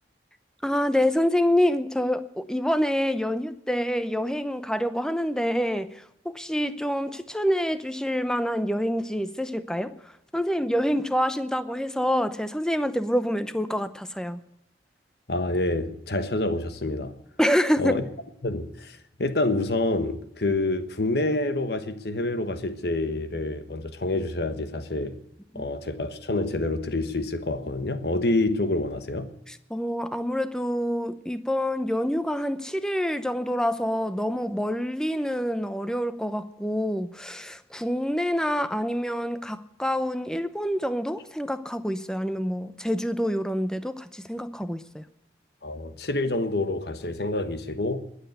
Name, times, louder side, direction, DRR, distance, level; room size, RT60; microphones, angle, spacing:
voice 1, 0.6-14.4 17.4-18.0 25.5-25.6 29.5-45.0, equal, 5° left, 0.7 m, -27 dB
voice 2, 15.3-17.1 17.8-18.0 18.4-25.2 25.5-29.3 45.6-48.0, left 2 dB, 60° left, 1.2 m, -27 dB
21.0 x 8.1 x 7.9 m
head